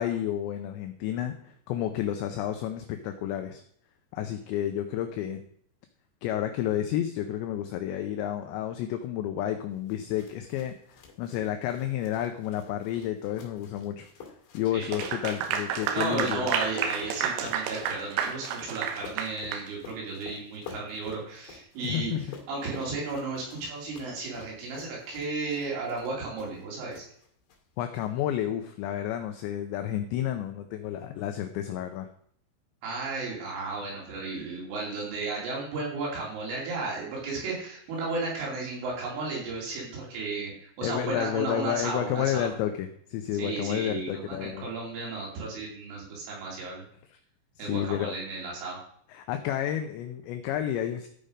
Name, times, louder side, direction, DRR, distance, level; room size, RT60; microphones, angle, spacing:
voice 1, 0.0-3.6 4.1-5.4 6.2-14.1 14.5-16.5 21.8-22.3 27.8-32.1 40.8-44.7 47.1-47.2 47.6-48.2 49.1-51.1, left 11 dB, 85° left, 7 dB, 2.5 m, -31 dB
sound 1, 9.9-26.6 26.9-27.6, left 6 dB, 60° left, 4.1 m, -49 dB
Clapping / Applause, 14.8-19.7, right 8 dB, 90° right, 3.8 m, -31 dB
voice 2, 15.9-22.1 22.5-27.1 32.8-42.5 43.4-46.8 47.6-48.8, right 3 dB, 70° right, -3 dB, 5.6 m, -34 dB
14.0 x 5.4 x 5.1 m, 0.65 s
omnidirectional pair, 5.9 m